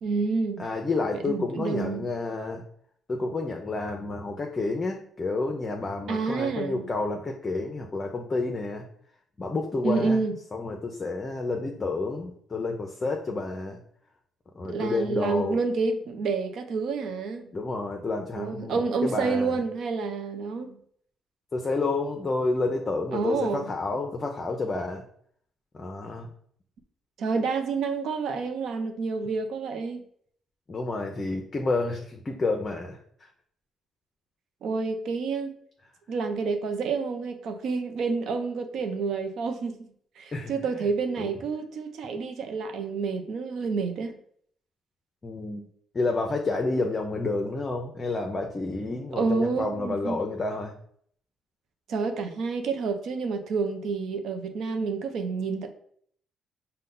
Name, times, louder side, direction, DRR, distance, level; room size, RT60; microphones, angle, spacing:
voice 1, 0.0-0.7 1.2-2.1 6.1-6.8 9.8-10.3 14.6-17.5 18.4-20.8 23.1-23.6 27.2-30.0 34.6-35.5 36.1-39.8 40.2-44.2 49.2-50.2 51.9-55.7, right 4 dB, 70° right, 7 dB, 0.6 m, -29 dB
voice 2, 0.6-2.6 3.1-8.8 9.4-10.2 10.5-13.8 14.5-15.6 17.5-19.5 21.5-25.0 25.7-26.3 30.7-33.3 40.3-40.5 41.2-41.4 45.2-45.6 45.9-50.7, left 3 dB, 30° left, 2 dB, 0.6 m, -30 dB
5.3 x 2.2 x 3.8 m, 0.63 s
cardioid pair, 90°, 0 cm